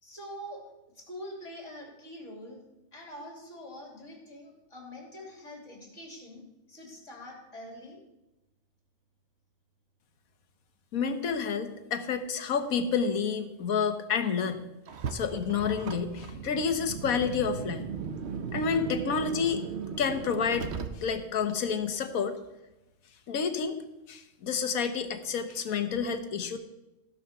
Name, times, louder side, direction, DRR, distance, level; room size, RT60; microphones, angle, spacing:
voice 1, 0.0-0.7 0.9-2.6 2.9-6.4 6.7-8.0, equal, 60° left, 1 dB, 3.5 m, -44 dB
voice 2, 10.9-14.6 15.1-17.9 18.5-19.6 20.0-20.7 21.0-22.4 23.3-23.8 24.1-26.6, left 6 dB, 85° left, 9 dB, 1.5 m, -29 dB
Car, 14.9-21.4, right 6 dB, 55° right, 1.1 m, -37 dB
17.0 x 5.7 x 6.8 m, 0.97 s
omnidirectional pair, 1.4 m